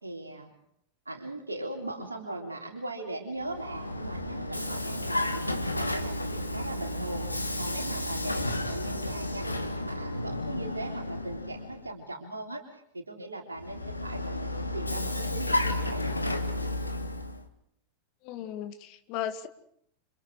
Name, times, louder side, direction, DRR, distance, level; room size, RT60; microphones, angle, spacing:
voice 1, 0.0-0.5 1.1-16.0, right 2 dB, 80° right, 2 dB, 3.7 m, -39 dB
Vehicle, 3.4-11.9 13.6-17.4, left 1 dB, 85° left, 1.8 m, -32 dB
voice 2, 18.2-19.5, left 10 dB, 45° left, 8 dB, 2.1 m, -36 dB
29.5 x 26.5 x 4.8 m, 0.72 s
figure-of-eight pair, 90°, 0 cm